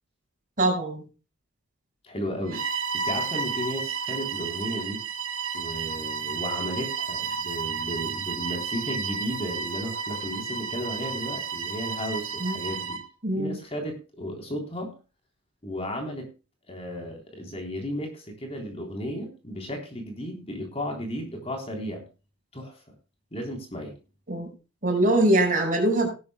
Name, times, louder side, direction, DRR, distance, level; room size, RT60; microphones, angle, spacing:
voice 1, 0.6-1.0 12.4-12.6 13.2-13.6 24.3-24.5 24.8-26.1, right 1 dB, 40° right, 2 dB, 5.5 m, -22 dB
voice 2, 2.0-5.0 5.5-13.0 13.4-14.9 15.6-16.3 16.7-22.0 22.5-22.8 23.3-24.0, equal, 30° left, 2 dB, 3.5 m, -34 dB
Bowed string instrument, 2.5-13.1, right 5 dB, 90° right, 2.2 m, -32 dB
17.5 x 12.5 x 2.2 m, 0.32 s
head